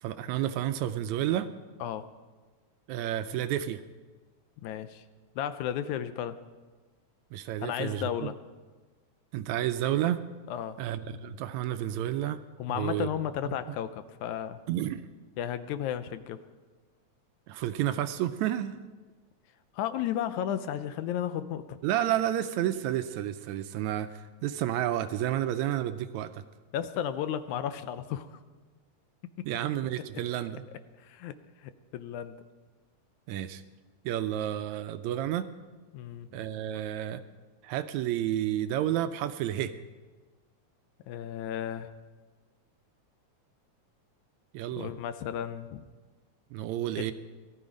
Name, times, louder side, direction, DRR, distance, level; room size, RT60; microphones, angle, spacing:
voice 1, 0.0-1.5 2.9-3.8 7.3-8.3 9.3-10.2 10.8-12.4 12.7-13.1 14.7-15.0 17.5-18.8 21.8-26.4 29.5-30.6 33.3-33.6 34.1-35.5 36.3-37.2 37.6-39.8 44.5-44.9 46.5-47.1, right 12 dB, 80° right, 11 dB, 1.8 m, -30 dB
voice 2, 4.6-5.0 5.4-6.4 7.6-8.3 10.5-10.8 12.6-14.6 15.4-16.4 19.7-21.8 26.7-28.3 29.4-29.5 31.0-31.4 31.6-32.4 35.9-36.3 41.1-41.9 44.8-45.9 47.0-47.1, left 10 dB, 80° left, 12 dB, 2.0 m, -33 dB
18.0 x 12.5 x 5.1 m, 1.3 s
omnidirectional pair, 3.5 m